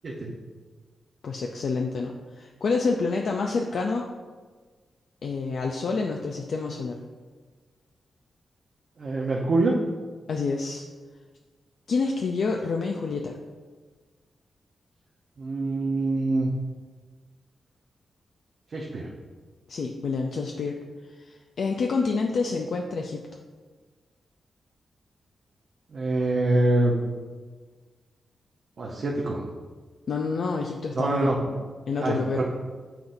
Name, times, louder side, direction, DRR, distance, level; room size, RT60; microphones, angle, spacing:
voice 1, 1.2-4.1 5.2-7.0 10.3-10.9 11.9-13.4 19.7-20.8 21.1-23.2 30.1-32.4, left 4 dB, 70° left, 1 dB, 0.4 m, -28 dB
voice 2, 9.0-9.7 15.4-16.5 18.7-19.1 25.9-26.9 28.8-29.4 31.0-31.4 32.0-32.4, right 2 dB, 55° right, -3 dB, 0.8 m, -25 dB
6.9 x 5.8 x 2.6 m, 1.4 s
wide cardioid pair, 100°, 0 cm